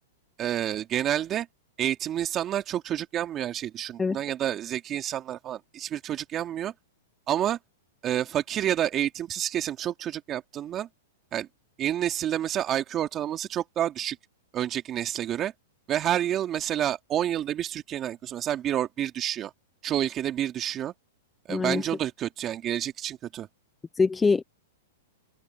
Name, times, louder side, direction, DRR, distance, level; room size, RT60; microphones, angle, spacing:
voice 1, 0.4-1.5 1.8-6.7 7.3-7.6 8.0-10.9 11.3-11.5 11.8-14.2 14.5-15.5 15.9-19.5 19.8-20.9 21.5-23.5, right 11 dB, 25° right, 2.8 m, -29 dB
voice 2, 21.5-21.8 24.0-24.4, left 4 dB, 10° left, 0.9 m, -23 dB
hypercardioid pair, 135°, 0 cm